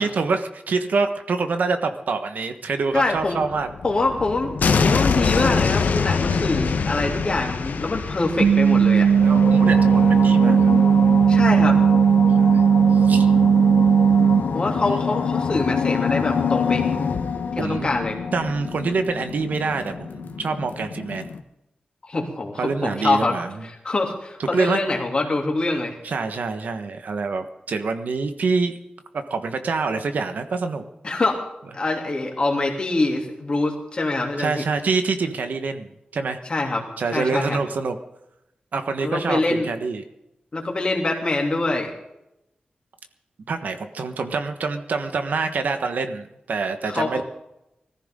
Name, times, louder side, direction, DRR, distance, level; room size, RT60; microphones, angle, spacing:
voice 1, 0.0-3.7 6.3-6.4 9.2-10.7 12.4-12.6 12.9-13.3 17.6-17.9 18.3-21.3 22.6-23.5 24.5-24.8 26.0-28.7 29.1-30.8 34.4-36.4 37.0-38.0 38.7-40.0 43.5-47.2, right 4 dB, 75° right, 8 dB, 1.3 m, -26 dB
voice 2, 2.9-3.4 3.8-9.1 11.3-11.8 14.5-16.9 17.5-18.2 22.1-23.4 23.8-25.9 31.0-31.4 31.7-34.6 36.4-36.8 37.1-37.6 39.0-39.7 40.5-41.9 46.9-47.2, left 2 dB, 35° left, 1 dB, 2.9 m, -24 dB
sound 1, 3.2-21.4, left 5 dB, 90° left, 1.1 m, -25 dB
sound 2, 8.4-14.4, right 7 dB, 45° right, 1.5 m, -16 dB
20.5 x 14.5 x 3.8 m, 0.86 s
wide cardioid pair, 170°, 3 cm